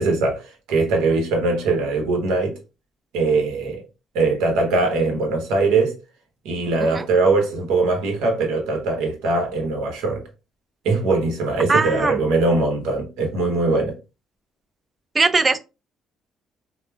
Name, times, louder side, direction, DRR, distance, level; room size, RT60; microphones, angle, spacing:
voice 1, 0.0-2.6 3.1-3.8 4.1-6.0 6.4-10.2 10.8-14.0, right 3 dB, 85° right, 0.9 m, -21 dB
voice 2, 11.7-12.2 15.1-15.6, right 3 dB, 25° right, 0.3 m, -20 dB
3.0 x 2.0 x 2.2 m
cardioid pair, 85°, 0 cm